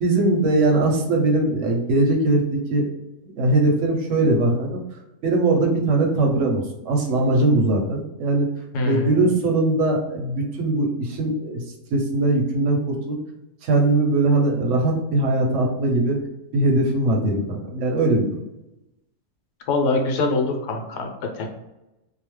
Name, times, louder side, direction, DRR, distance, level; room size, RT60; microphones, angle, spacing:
voice 1, 0.0-2.9 3.2-4.8 5.2-8.5 8.8-11.6 11.9-13.2 13.6-16.2 16.5-18.4, right 2 dB, 60° right, 1 dB, 0.8 m, -20 dB
voice 2, 8.7-9.3 19.7-21.1 21.3-21.5, left 2 dB, 85° left, 2 dB, 1.2 m, -23 dB
2.8 x 2.0 x 3.1 m, 0.94 s
omnidirectional pair, 1.7 m